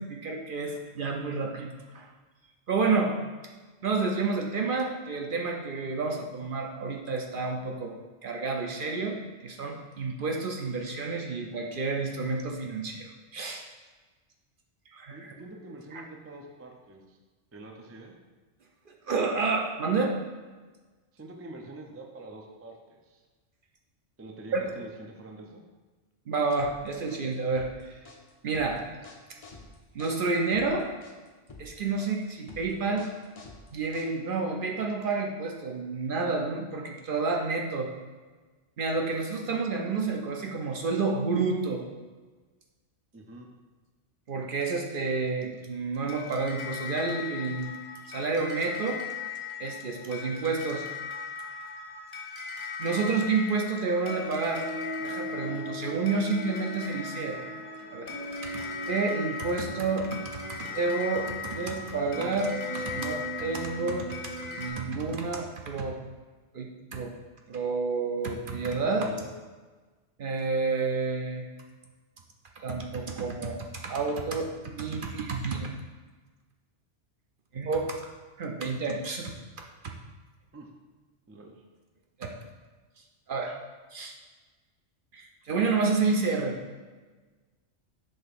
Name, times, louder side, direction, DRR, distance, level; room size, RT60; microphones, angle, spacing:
voice 1, 0.0-2.1 2.7-3.1 3.8-8.0 8.2-13.6 14.9-15.3 15.9-16.0 19.1-20.2 24.5-24.6 26.3-28.0 28.4-28.8 29.9-30.9 31.6-33.1 33.7-37.9 38.8-41.8 44.3-47.7 48.1-49.0 49.6-50.9 52.8-54.7 55.0-57.5 57.9-58.1 58.4-60.2 60.5-66.0 66.5-67.1 67.5-69.1 70.2-71.5 72.6-75.7 77.5-78.1 78.4-79.3 82.2-82.3 83.3-83.6 83.9-84.2 85.1-86.6, right 4 dB, 55° right, 2 dB, 0.7 m, -30 dB
voice 2, 15.1-17.2 17.5-18.2 21.1-22.8 23.0-23.2 24.2-25.6 43.1-43.5 69.0-69.3 80.5-80.7 81.3-81.6, right 2 dB, 20° right, 1 dB, 0.4 m, -45 dB
sound 1, 26.6-34.4, left 2 dB, 35° left, 0.7 m, -49 dB
sound 2, 46.1-64.7, left 3 dB, 70° left, 1.8 m, -37 dB
5.5 x 3.4 x 5.8 m, 1.3 s
omnidirectional pair, 1.2 m